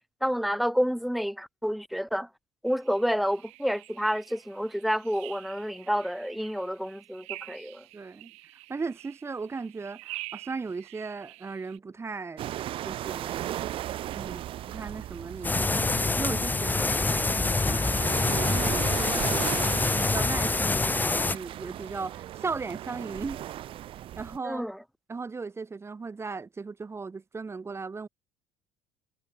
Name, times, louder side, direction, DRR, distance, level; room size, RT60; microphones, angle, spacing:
voice 1, 0.2-2.3 2.6-7.9 24.4-24.8, equal, ahead, 0.5 m, -29 dB
sound 1, 2.7-11.8, right 22 dB, 75° right, 1.7 m, -47 dB
voice 2, 7.9-8.3 8.7-12.5 12.8-13.3 14.1-23.4 24.2-24.6 25.1-28.1, right 4 dB, 25° right, 2.2 m, -37 dB
sound 2, 12.4-24.4, right 13 dB, 55° right, 0.6 m, -36 dB
sound 3, 15.4-21.3, left 3 dB, 15° left, 1.1 m, -26 dB
supercardioid pair, 85°, 11 cm